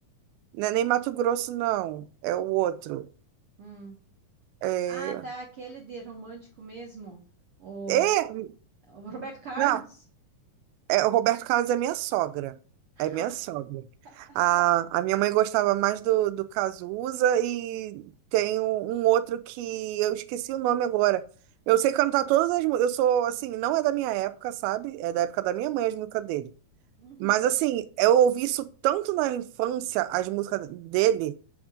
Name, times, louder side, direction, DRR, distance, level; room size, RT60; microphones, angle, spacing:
voice 1, 0.5-3.1 4.6-5.2 7.9-8.5 9.6-9.8 10.9-12.5 13.0-13.8 14.2-21.2 21.7-26.5 27.2-31.3, right 12 dB, 85° right, 2.4 m, -25 dB
voice 2, 3.6-4.0 4.9-7.2 7.6-8.1 8.9-9.8 13.0-13.4 14.0-14.4 27.0-27.4, right 4 dB, 65° right, 1.4 m, -40 dB
7.9 x 3.6 x 5.0 m
omnidirectional pair, 4.3 m